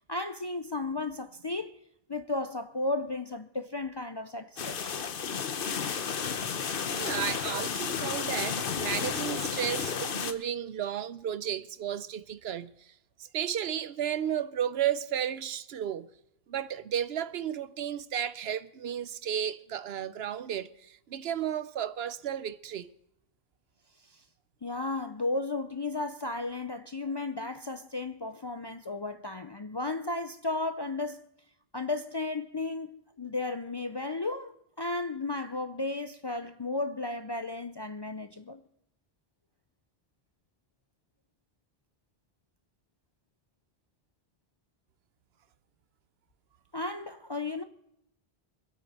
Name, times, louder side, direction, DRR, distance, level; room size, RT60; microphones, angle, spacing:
voice 1, 0.1-1.8 2.1-4.9 24.1-24.2 24.6-31.2 31.7-38.6 46.7-47.6, left 2 dB, 40° left, 0.4 m, -34 dB
sound 1, 4.6-10.3, left 6 dB, 60° left, 1.0 m, -32 dB
voice 2, 5.9-6.6 7.0-12.7 13.3-16.1 16.5-22.9, right 9 dB, 75° right, 0.9 m, -33 dB
24.5 x 8.6 x 4.2 m
omnidirectional pair, 1.1 m